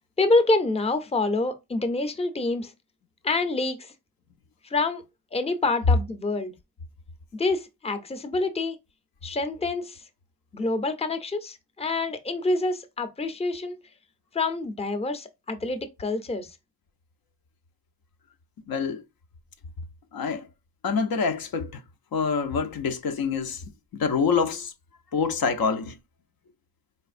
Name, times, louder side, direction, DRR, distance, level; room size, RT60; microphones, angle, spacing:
voice 1, 0.2-2.7 3.2-3.9 4.7-5.0 5.3-6.5 7.3-8.8 9.2-10.0 10.5-13.8 14.3-16.5, left 2 dB, 15° left, 0.6 m, -27 dB
voice 2, 18.7-19.0 20.1-20.5 20.8-21.8 22.1-23.6 24.0-24.7 25.1-26.0, left 5 dB, 65° left, 0.6 m, -26 dB
4.2 x 2.9 x 2.4 m
cardioid pair, 85°, 38 cm